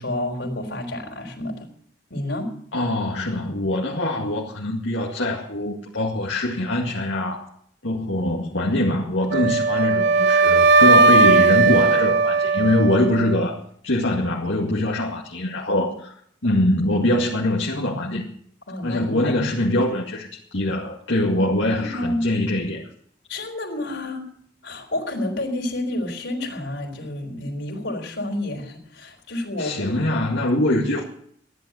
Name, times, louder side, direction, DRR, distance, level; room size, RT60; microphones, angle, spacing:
voice 1, 0.0-1.7 2.1-2.5 18.7-19.4 21.7-22.3 23.3-24.3 24.6-30.3, left 1 dB, 75° left, 2 dB, 4.0 m, -29 dB
voice 2, 2.7-7.5 7.8-13.6 13.8-16.1 16.4-18.3 18.8-22.9 29.6-31.0, left 1 dB, 90° left, -4 dB, 2.2 m, -23 dB
Wind instrument woodwind instrument, 9.3-13.4, right 4 dB, 65° right, 0.7 m, -17 dB
14.0 x 11.0 x 8.0 m, 0.64 s
head